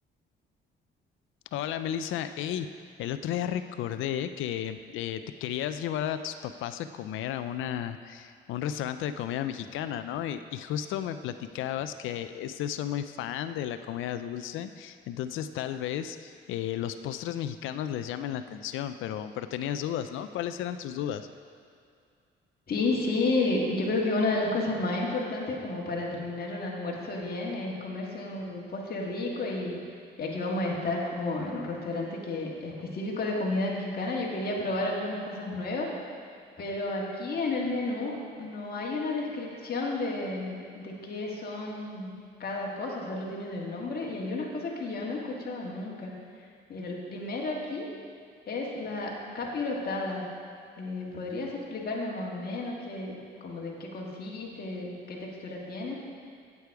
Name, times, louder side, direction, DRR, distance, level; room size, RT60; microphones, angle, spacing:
voice 1, 1.5-2.7 3.0-21.3, left 10 dB, 85° left, 10 dB, 0.4 m, -33 dB
voice 2, 22.7-29.8 30.2-35.9 36.6-42.1 42.4-46.1 46.4-47.9 48.5-50.3 50.8-53.2 53.4-56.0, left 2 dB, 50° left, -2 dB, 1.8 m, -32 dB
8.4 x 8.2 x 4.8 m, 2.3 s
cardioid pair, 90°, 20 cm